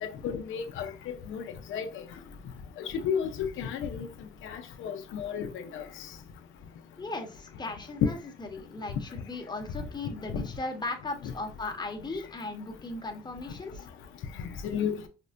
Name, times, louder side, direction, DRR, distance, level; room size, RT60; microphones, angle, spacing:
voice 1, 0.0-1.4 1.7-1.9 2.9-4.1 4.4-5.8 8.0-8.1 10.3-10.5 11.2-11.3 14.6-15.1, left 7 dB, 80° left, 0.5 m, -32 dB
voice 2, 7.0-13.9, left 2 dB, 20° left, 1.0 m, -37 dB
5.1 x 2.1 x 2.5 m
cardioid pair, 90°, 20 cm